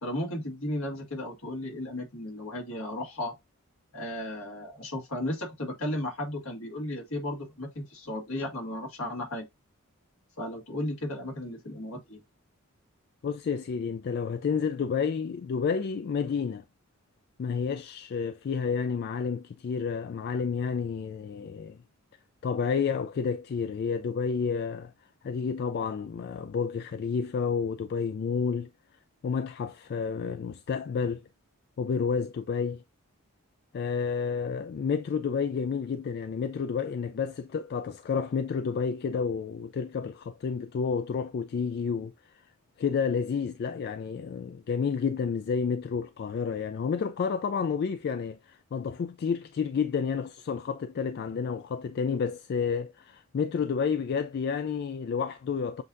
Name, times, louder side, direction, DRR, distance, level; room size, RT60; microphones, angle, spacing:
voice 1, 0.0-3.3 3.9-9.5 10.4-12.2, left 1 dB, 75° left, 1.9 m, -34 dB
voice 2, 13.2-16.6 17.4-21.8 22.4-24.9 25.2-28.7 29.2-31.2 31.8-32.8 33.7-42.1 42.8-55.8, left 6 dB, 45° left, 0.3 m, -30 dB
7.6 x 2.6 x 2.5 m
head